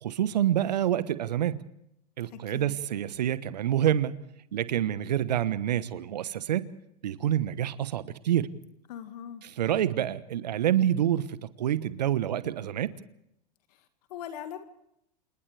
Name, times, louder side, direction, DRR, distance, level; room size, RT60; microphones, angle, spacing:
voice 1, 0.0-1.6 2.2-4.2 4.5-6.7 7.0-8.6 9.6-12.9, right 11 dB, 80° right, 1.2 m, -27 dB
voice 2, 2.3-2.8 8.9-9.5 13.7-14.6, left 9 dB, 70° left, 1.9 m, -41 dB
29.5 x 27.5 x 3.4 m
hypercardioid pair, 95°, 21 cm